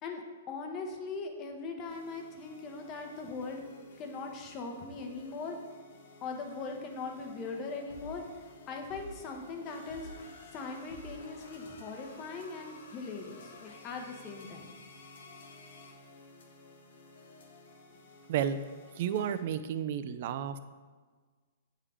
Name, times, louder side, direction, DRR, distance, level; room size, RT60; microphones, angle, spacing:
voice 1, 0.0-3.6 4.0-5.6 6.2-8.2 8.7-10.1 10.5-14.7, left 4 dB, 30° left, 2 dB, 0.9 m, -40 dB
sound 1, 1.8-19.4, left 3 dB, 75° left, 0.9 m, -53 dB
voice 2, 19.0-20.6, right 9 dB, 55° right, 11 dB, 0.4 m, -32 dB
8.2 x 3.6 x 3.5 m, 1.5 s
hypercardioid pair, 140°, 0 cm